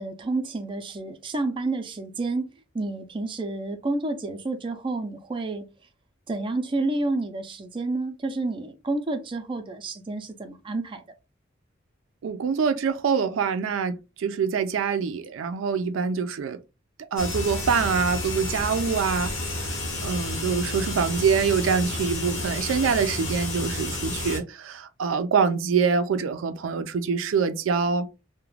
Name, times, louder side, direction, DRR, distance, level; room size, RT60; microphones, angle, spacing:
voice 1, 0.0-2.5 2.7-5.6 6.3-11.0, right 2 dB, 25° right, 0.4 m, -29 dB
voice 2, 12.2-16.6 17.1-28.1, right 6 dB, 90° right, 0.4 m, -25 dB
sound 1, 17.2-24.4, left 2 dB, 80° left, 0.9 m, -31 dB
2.4 x 2.1 x 3.1 m
head